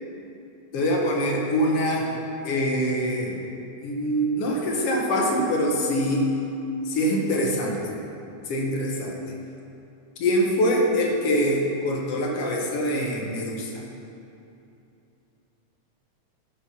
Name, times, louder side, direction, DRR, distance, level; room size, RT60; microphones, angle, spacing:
voice 1, 0.7-2.1 2.4-3.4 3.8-6.3 6.9-7.8 8.5-9.1 10.2-13.8, equal, 60° left, -1 dB, 2.0 m, -24 dB
12.5 x 5.0 x 5.7 m, 2.8 s
omnidirectional pair, 3.4 m